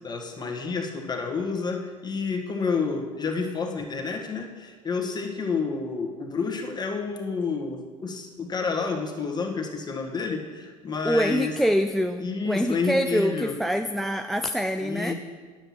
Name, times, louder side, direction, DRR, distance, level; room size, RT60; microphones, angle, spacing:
voice 1, 0.0-11.5 12.2-13.5 14.8-15.1, left 4 dB, 25° left, 2 dB, 1.6 m, -29 dB
voice 2, 11.0-15.1, equal, ahead, 8 dB, 0.4 m, -25 dB
9.9 x 7.5 x 5.9 m, 1.5 s
hypercardioid pair, 75°, 17 cm